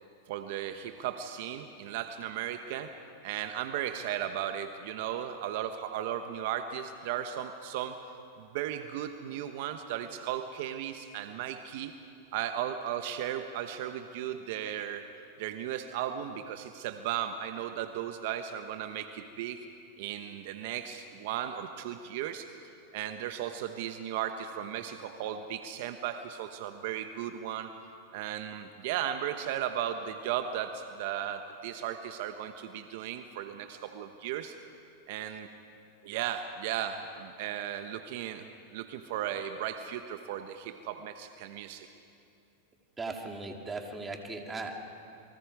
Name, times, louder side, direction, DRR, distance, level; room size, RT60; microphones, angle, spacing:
voice 1, 0.3-2.9 3.2-8.0 8.4-11.9 12.3-15.1 15.4-19.7 20.0-22.5 22.9-27.7 28.1-34.6 35.1-35.5 36.0-41.9, right 10 dB, 60° right, 8 dB, 1.1 m, -36 dB
voice 2, 43.0-44.8, right 3 dB, 15° right, 2 dB, 2.7 m, -38 dB
29.0 x 23.5 x 4.8 m, 2.6 s
hypercardioid pair, 125°, 0 cm